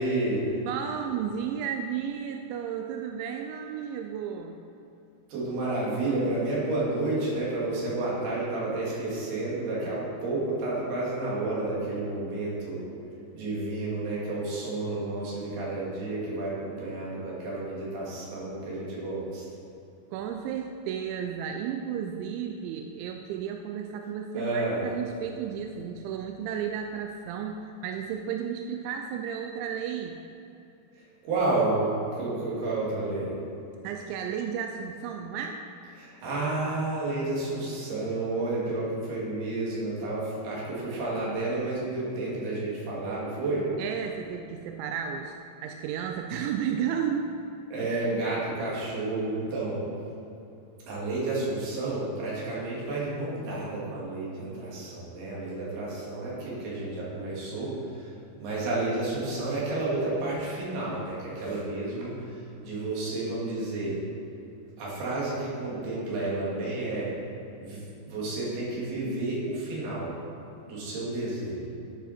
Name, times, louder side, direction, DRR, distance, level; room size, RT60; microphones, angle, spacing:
voice 1, 0.0-0.5 5.3-12.8 13.3-19.5 24.3-24.8 31.0-33.3 36.0-43.7 47.7-49.8 50.9-58.1 58.4-64.0 64.8-67.1 67.6-70.1 70.7-71.6, right 2 dB, 65° right, -6 dB, 4.1 m, -31 dB
voice 2, 0.6-4.6 9.8-10.0 20.1-30.2 33.8-35.6 43.8-45.3 45.6-47.3 47.8-48.1, right 8 dB, 90° right, 4 dB, 2.9 m, -33 dB
11.5 x 7.0 x 4.3 m, 2.9 s
omnidirectional pair, 5.2 m